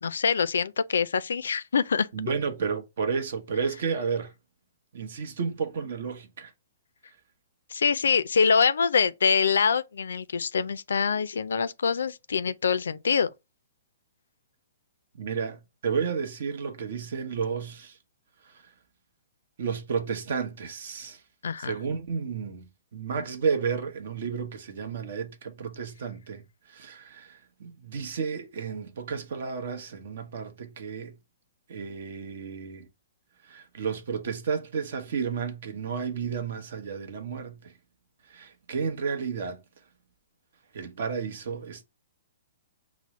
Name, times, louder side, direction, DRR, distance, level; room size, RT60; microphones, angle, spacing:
voice 1, 0.0-2.1 7.7-13.3 21.4-21.7, left 6 dB, 85° left, 0.3 m, -25 dB
voice 2, 2.1-4.3 4.9-6.5 15.2-18.0 18.4-18.5 19.6-21.2 21.6-22.7 22.9-31.1 31.7-32.9 33.4-37.7 38.3-39.6 40.7-41.8, right 6 dB, 65° right, 0.8 m, -32 dB
5.9 x 2.0 x 3.0 m
hypercardioid pair, 150°, 0 cm